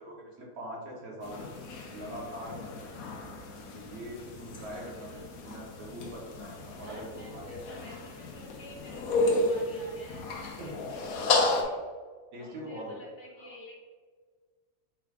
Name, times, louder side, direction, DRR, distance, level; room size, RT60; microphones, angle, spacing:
voice 1, 0.0-1.4 1.9-2.8 3.7-7.6 10.6-10.7 12.3-13.0 13.4-13.5, right 1 dB, 85° right, -2 dB, 1.6 m, -42 dB
sound 1, 1.2-11.6, left 2 dB, 75° left, 1.1 m, -33 dB
voice 2, 4.7-5.8 6.8-11.8 12.4-13.8, left 1 dB, 55° left, -4 dB, 1.2 m, -50 dB
4.5 x 2.5 x 4.6 m, 1.5 s
omnidirectional pair, 1.5 m